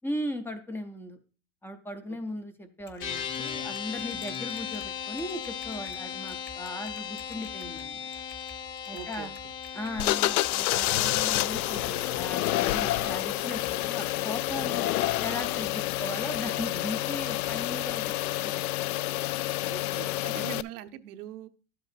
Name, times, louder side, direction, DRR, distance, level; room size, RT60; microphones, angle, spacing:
voice 1, 0.0-1.2 1.6-8.1 8.9-9.3 9.7-14.9 15.2-19.0, left 1 dB, 5° left, 9 dB, 0.3 m, -38 dB
Typing, 2.8-18.3, left 3 dB, 25° left, 1.1 m, -53 dB
sound 1, 3.0-16.5, left 7 dB, 45° left, 1.4 m, -39 dB
voice 2, 8.9-9.5 19.7-21.5, right 12 dB, 90° right, 9 dB, 0.8 m, -42 dB
sound 2, 10.0-20.6, left 16 dB, 75° left, 0.5 m, -28 dB
12.0 x 7.8 x 2.4 m, 0.37 s
supercardioid pair, 135°, 44 cm